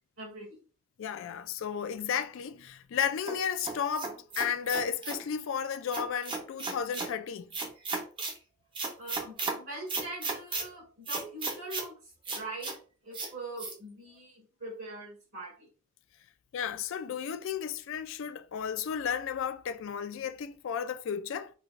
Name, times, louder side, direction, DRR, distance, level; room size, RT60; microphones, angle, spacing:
voice 1, 0.2-0.6 9.0-12.8 13.0-15.7, right 2 dB, 65° right, 1.8 m, -43 dB
voice 2, 1.0-7.5 16.5-21.5, left 7 dB, 60° left, 0.3 m, -33 dB
sound 1, 3.3-5.2 5.9-7.1 7.5-8.4 8.7-9.6 9.9-10.6 11.1-11.9 12.2-12.7 13.1-13.3 13.6-13.7, right 3 dB, 20° right, 0.6 m, -34 dB
4.6 x 2.2 x 2.4 m
head